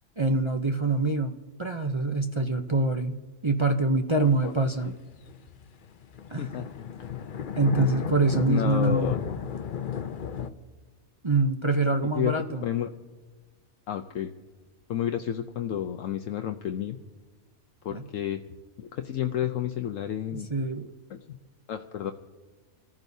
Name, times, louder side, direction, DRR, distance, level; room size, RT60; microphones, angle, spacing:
voice 1, 0.2-1.3 1.6-4.9 6.3-6.7 7.6-9.1 11.2-12.6 17.9-18.0 20.3-20.9, right 2 dB, 35° right, 6 dB, 0.5 m, -25 dB
voice 2, 4.1-4.5 4.8-4.9 6.4-7.1 8.5-9.2 12.1-12.9 13.9-14.3 14.9-17.0 17.8-18.4 18.8-20.5 21.1-21.4 21.7-22.1, left 10 dB, 70° left, 6 dB, 1.0 m, -31 dB
sound 1, 4.3-10.5, left 8 dB, 50° left, 0.7 m, -34 dB
29.5 x 14.5 x 2.7 m, 1.3 s
omnidirectional pair, 1.5 m